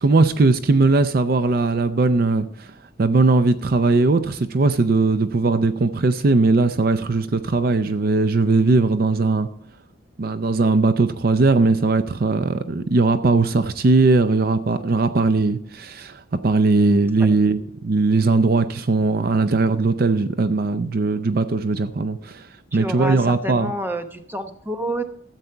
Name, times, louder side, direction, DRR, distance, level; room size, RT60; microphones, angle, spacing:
voice 1, 0.0-2.7 3.0-9.5 10.2-22.5 22.7-23.7, right 3 dB, 50° right, 0.5 m, -19 dB
voice 2, 22.7-25.0, right 1 dB, 10° right, 0.9 m, -28 dB
13.5 x 8.2 x 4.4 m
head